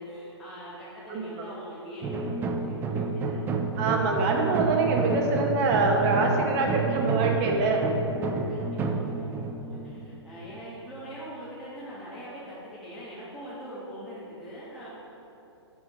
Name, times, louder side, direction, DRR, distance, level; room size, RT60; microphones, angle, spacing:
voice 1, 0.0-3.6 8.5-14.9, equal, ahead, -11 dB, 1.3 m, -42 dB
voice 2, 1.1-1.5 3.8-7.9, right 3 dB, 35° right, 1 dB, 1.0 m, -25 dB
sound 1, 2.0-10.8, right 4 dB, 15° right, 0.4 m, -30 dB
10.5 x 3.7 x 4.8 m, 2.9 s
hypercardioid pair, 130°, 15 cm